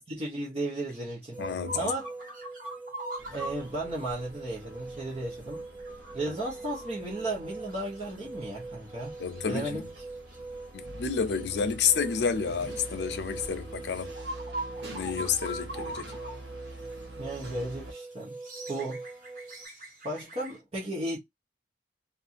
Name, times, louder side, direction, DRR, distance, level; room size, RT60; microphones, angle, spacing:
voice 1, 0.0-1.4 1.7-2.1 3.3-5.7 6.1-9.1 9.5-9.9 17.2-18.3 18.7-19.0 20.0-21.2, right 1 dB, 35° right, 0.9 m, -34 dB
sound 1, 0.7-3.7 5.0-5.2 5.5-8.1 8.4-8.5 9.0-9.7 10.3-10.4 11.2-11.4 12.6-12.8 13.5-13.6 13.9-16.4 16.7-16.8 17.3-17.6 18.2-20.6, right 1 dB, 50° right, 1.2 m, -42 dB
sound 2, 1.3-19.7, right 3 dB, 10° right, 0.4 m, -43 dB
voice 2, 1.4-1.9 9.2-9.8 10.7-14.1 14.9-16.2, left 6 dB, 70° left, 0.5 m, -30 dB
sound 3, 3.2-17.9, right 1 dB, 70° right, 0.9 m, -46 dB
2.7 x 2.5 x 2.3 m
head